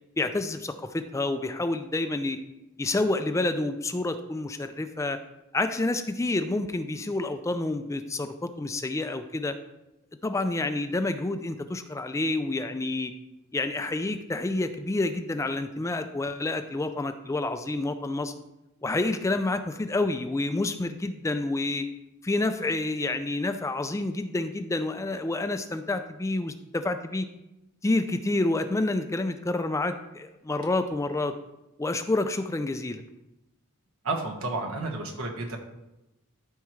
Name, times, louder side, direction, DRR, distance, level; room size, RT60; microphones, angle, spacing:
voice 1, 0.2-2.4 2.8-5.2 5.5-9.6 10.2-13.1 13.5-18.3 18.8-21.9 22.2-27.3 27.8-31.3 31.8-33.0, left 2 dB, 15° left, 8 dB, 0.3 m, -28 dB
voice 2, 34.0-35.6, right 2 dB, 75° right, 1 dB, 1.4 m, -31 dB
13.0 x 4.6 x 3.2 m, 0.93 s
head